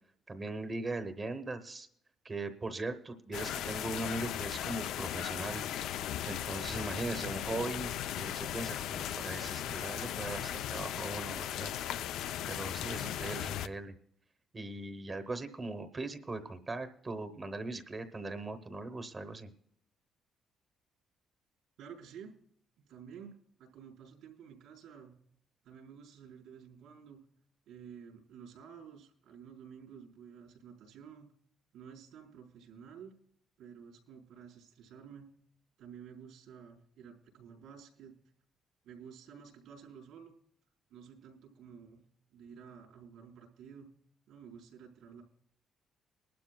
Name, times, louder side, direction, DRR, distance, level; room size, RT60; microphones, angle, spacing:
voice 1, 0.3-1.9 2.2-5.6 6.3-11.7 12.5-14.0 14.5-19.5, right 2 dB, 20° right, 9 dB, 0.8 m, -39 dB
sound 1, 3.3-13.7, left 11 dB, 90° left, 0.5 m, -37 dB
voice 2, 21.8-22.3 22.8-23.3 23.6-25.2 25.6-27.2 27.7-31.3 31.7-33.1 33.6-35.3 35.8-38.1 38.8-40.4 40.9-42.0 42.3-43.9 44.3-45.2, right 7 dB, 85° right, -2 dB, 4.2 m, -52 dB
22.0 x 12.0 x 2.2 m, 0.71 s
cardioid pair, 175°, 0 cm